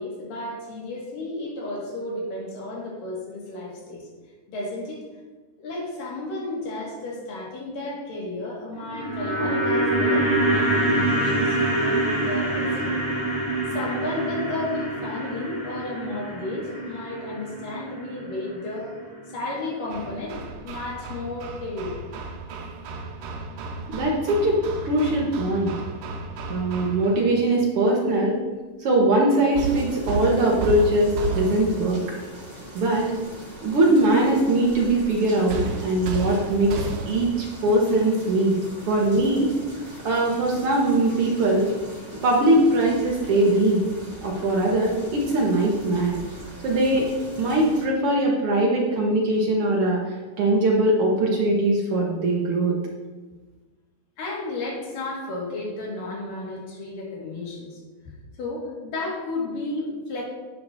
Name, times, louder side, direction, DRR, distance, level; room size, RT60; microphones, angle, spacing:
voice 1, 0.0-4.1 4.5-5.0 5.6-13.0 13.7-19.0 19.3-22.0 54.2-57.8 58.3-60.2, left 2 dB, 75° left, -3 dB, 3.5 m, -33 dB
sound 1, 8.7-19.0 19.3-19.4, right 1 dB, 10° left, 1.9 m, -25 dB
Hammer, 19.9-27.3 29.5-32.0 35.5-37.4, right 3 dB, 85° right, 2.5 m, -33 dB
voice 2, 23.9-25.7 26.5-28.4 28.8-32.0 32.7-33.1 33.6-38.5 38.9-39.5 40.0-41.7 42.2-43.8 44.2-46.2 46.6-47.1 47.4-50.0 50.4-52.8, right 1 dB, 65° right, -2 dB, 1.5 m, -21 dB
sound 2, 29.6-47.8, right 1 dB, 20° right, 1.4 m, -41 dB
10.5 x 8.6 x 2.6 m, 1.3 s
omnidirectional pair, 3.9 m